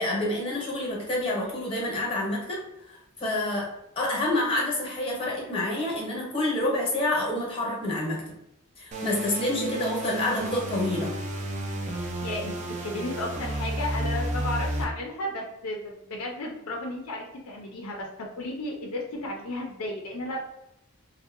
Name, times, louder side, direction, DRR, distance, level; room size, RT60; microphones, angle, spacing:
voice 1, 0.0-2.6 2.9-3.7 4.0-8.2 8.8-11.1, left 1 dB, 25° left, -3 dB, 0.8 m, -28 dB
sound 1, 8.9-14.8, right 1 dB, 35° right, 0.4 m, -32 dB
voice 2, 11.8-12.5 12.8-20.4, left 1 dB, 80° left, 0 dB, 0.4 m, -34 dB
2.6 x 2.1 x 2.4 m, 0.83 s
head